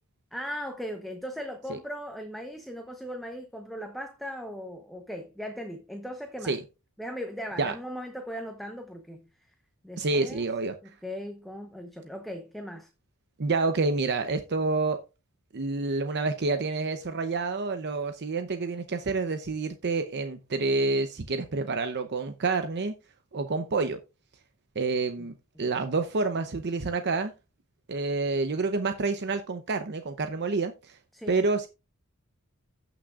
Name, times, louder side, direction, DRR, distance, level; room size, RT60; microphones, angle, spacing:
voice 1, 0.3-6.6 7.0-9.3 9.8-10.5 11.0-12.9 25.6-25.7 31.1-31.4, equal, ahead, 0.9 m, -38 dB
voice 2, 10.0-10.9 13.4-15.0 15.5-22.9 23.3-24.0 24.8-27.3 27.9-31.0 31.3-31.7, right 3 dB, 50° right, 0.7 m, -28 dB
16.0 x 6.1 x 2.4 m
head